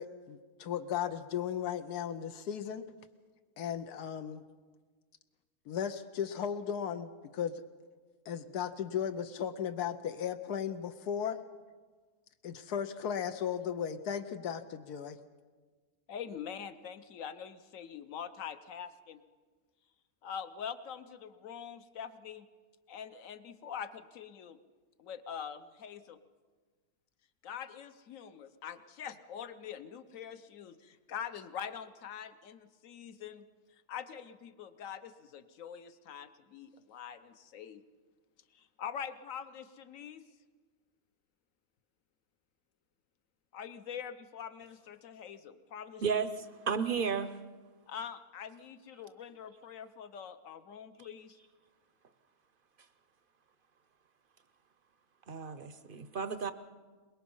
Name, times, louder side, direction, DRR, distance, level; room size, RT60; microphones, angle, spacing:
voice 1, 0.0-2.9 3.6-4.4 5.7-7.6 8.3-11.4 12.4-15.2, left 8 dB, 85° left, 8 dB, 1.3 m, -36 dB
voice 2, 16.1-19.2 20.2-22.5 22.9-24.6 25.0-26.2 27.4-33.5 33.9-37.8 38.5-40.2 43.5-46.0 47.9-51.4, left 8 dB, 60° left, 11 dB, 1.2 m, -44 dB
voice 3, 46.0-47.3 55.3-56.5, right 6 dB, 50° right, 11 dB, 0.7 m, -33 dB
23.0 x 21.0 x 5.5 m, 1.4 s
omnidirectional pair, 1.6 m